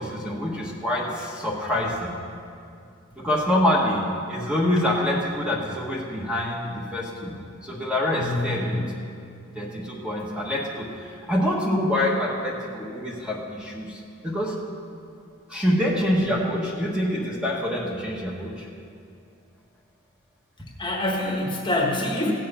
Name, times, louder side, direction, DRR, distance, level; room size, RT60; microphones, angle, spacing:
voice 1, 0.0-2.1 3.2-7.3 7.6-8.8 9.5-10.9 11.3-14.6 15.5-18.7, left 1 dB, 5° right, -3 dB, 1.4 m, -26 dB
voice 2, 8.1-8.9 20.8-22.3, left 1 dB, 25° left, -1 dB, 1.3 m, -26 dB
16.0 x 7.6 x 5.7 m, 2.4 s
head